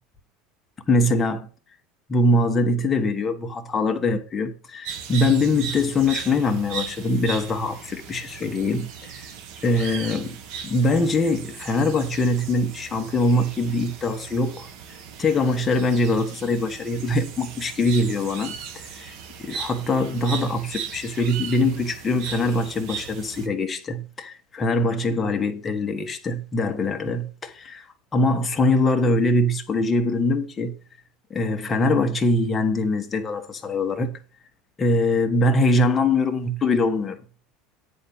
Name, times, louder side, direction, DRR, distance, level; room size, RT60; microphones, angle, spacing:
voice 1, 0.9-1.5 2.1-9.3 9.6-10.4 10.6-14.7 15.2-19.1 19.4-27.9 28.1-30.7 31.3-34.1 34.8-37.2, left 2 dB, 20° left, 1.4 m, -23 dB
sound 1, 4.8-23.5, right 7 dB, 60° right, 1.5 m, -37 dB
10.0 x 4.2 x 7.1 m
cardioid pair, 145°, 0 cm